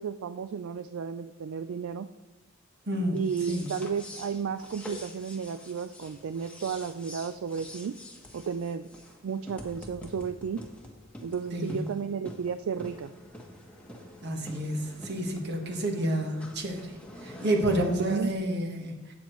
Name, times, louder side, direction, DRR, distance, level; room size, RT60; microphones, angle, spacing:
voice 1, 0.0-2.1 3.1-8.0 8.3-8.9 9.2-10.6 11.2-13.1 18.0-18.3, right 6 dB, 70° right, 10 dB, 0.3 m, -33 dB
voice 2, 2.9-3.2 3.5-3.7 11.5-11.8 14.2-16.9 17.2-19.0, right 1 dB, 55° right, 3 dB, 1.4 m, -29 dB
sound 1, 3.1-18.3, left 1 dB, 5° left, 1.2 m, -47 dB
12.5 x 8.4 x 3.1 m, 1.1 s
head